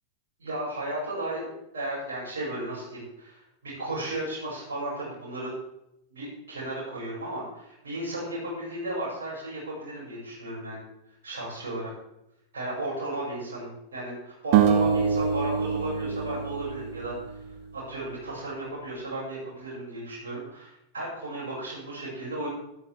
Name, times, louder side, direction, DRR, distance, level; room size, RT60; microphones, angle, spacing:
voice 1, 0.4-1.5 1.7-5.5 6.1-10.8 11.2-11.9 12.5-17.4 17.7-22.5, right 1 dB, 65° right, -7 dB, 6.0 m, -34 dB
sound 1, 14.5-17.7, right 7 dB, 45° right, 1.4 m, -25 dB
14.0 x 12.5 x 3.4 m, 0.81 s
figure-of-eight pair, 90°, 0 cm